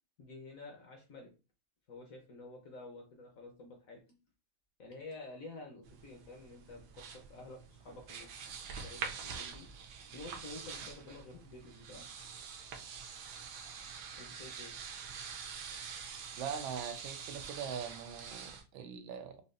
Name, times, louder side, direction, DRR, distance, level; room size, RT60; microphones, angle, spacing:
voice 1, 0.2-1.3 1.9-4.0 4.8-9.7 10.1-12.1 14.1-14.7, left 2 dB, 55° left, 1.1 m, -50 dB
sound 1, 5.8-18.6, right 6 dB, 70° right, 1.1 m, -46 dB
voice 2, 16.4-19.4, right 7 dB, 85° right, 1.4 m, -42 dB
5.2 x 2.4 x 2.5 m
omnidirectional pair, 2.1 m